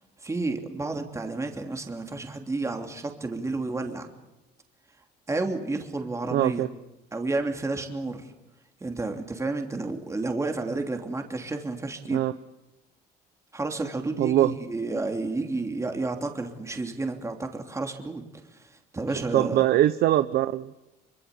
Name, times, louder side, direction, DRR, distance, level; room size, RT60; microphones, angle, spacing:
voice 1, 0.2-4.1 5.3-6.7 7.1-8.3 8.8-12.2 13.5-18.2 18.5-19.6, right 3 dB, 15° right, 4 dB, 2.9 m, -31 dB
voice 2, 6.3-6.7 12.1-12.3 14.2-14.5 19.3-20.8, right 13 dB, 70° right, 12 dB, 0.9 m, -22 dB
24.5 x 24.5 x 8.4 m, 0.97 s
cardioid pair, 110°, 17 cm